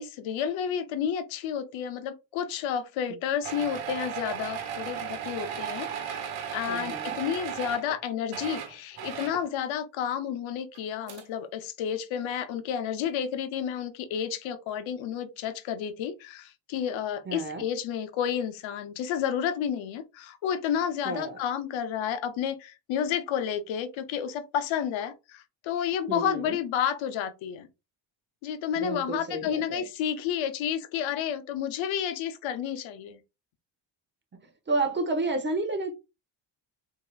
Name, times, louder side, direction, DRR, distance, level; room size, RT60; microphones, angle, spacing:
voice 1, 0.0-27.7 28.4-33.2, left 8 dB, 75° left, 0.7 m, -31 dB
sound 1, 3.4-8.0 8.2-9.5 10.7-10.8 11.1-11.2, right 8 dB, 75° right, 1.1 m, -35 dB
voice 2, 6.7-7.2 17.3-17.6 21.0-21.4 26.1-26.6 28.8-29.9 34.7-35.9, right 2 dB, 25° right, 0.7 m, -30 dB
4.4 x 2.8 x 2.3 m
cardioid pair, 125°, 47 cm